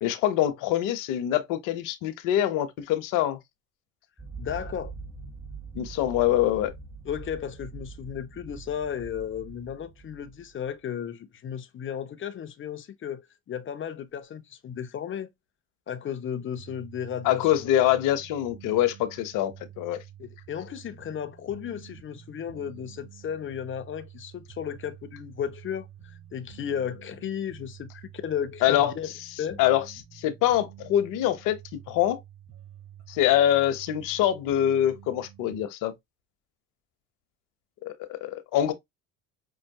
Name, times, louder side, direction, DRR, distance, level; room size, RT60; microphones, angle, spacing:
voice 1, 0.0-3.4 5.7-6.7 17.2-20.0 28.6-28.9 29.6-29.9 30.1-32.2 33.1-35.9 37.8-38.7, left 12 dB, 70° left, 1.0 m, -24 dB
sound 1, 4.2-10.7, right 4 dB, 5° right, 1.3 m, -43 dB
voice 2, 4.4-4.9 7.0-13.2 13.5-15.3 15.9-17.8 20.2-29.1 29.4-29.6, left 8 dB, 35° left, 0.8 m, -34 dB
sound 2, 16.6-35.6, right 11 dB, 50° right, 3.0 m, -49 dB
5.5 x 2.5 x 2.3 m
supercardioid pair, 75°, 33 cm